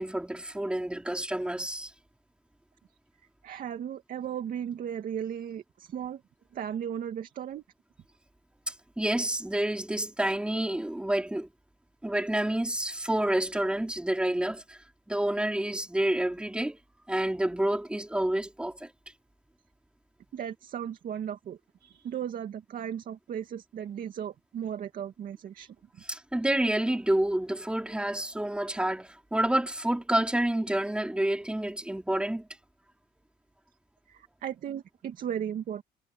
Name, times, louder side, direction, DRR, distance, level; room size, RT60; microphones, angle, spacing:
voice 1, 0.0-1.9 8.7-11.5 12.0-16.8 17.1-18.9 26.1-32.5, right 1 dB, 5° right, 3.8 m, -29 dB
voice 2, 3.4-6.2 6.5-7.6 20.3-25.7 34.1-35.8, right 9 dB, 55° right, 2.5 m, -36 dB
cardioid pair, 110°, 17 cm